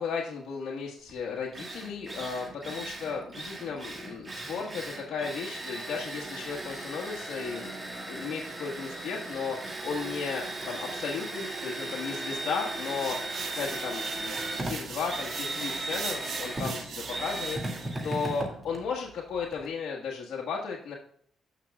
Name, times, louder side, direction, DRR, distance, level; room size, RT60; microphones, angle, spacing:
voice 1, 0.0-13.3 13.5-21.0, left 5 dB, 65° left, -2 dB, 1.4 m, -35 dB
Drill, 1.1-1.2 1.5-19.7, right 2 dB, 25° right, 2.1 m, -37 dB
sound 1, 12.8-17.9, right 6 dB, 65° right, 1.7 m, -40 dB
14.0 x 6.1 x 2.3 m, 0.62 s
cardioid pair, 90°, 0 cm